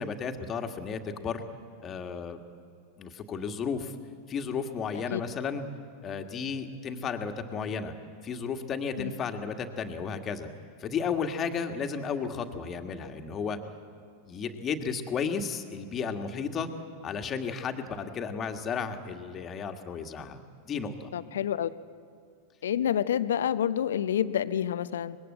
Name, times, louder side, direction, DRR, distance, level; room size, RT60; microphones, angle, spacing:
voice 1, 0.0-1.4 1.8-2.4 3.0-3.9 4.3-5.6 6.0-7.9 8.2-10.5 10.8-13.6 14.3-16.7 17.0-20.4 20.7-21.1, left 6 dB, 30° left, 6 dB, 1.9 m, -33 dB
voice 2, 21.1-21.8 22.6-25.2, left 9 dB, 65° left, 15 dB, 0.7 m, -28 dB
25.0 x 21.0 x 8.0 m, 2.3 s
figure-of-eight pair, 90°, 0 cm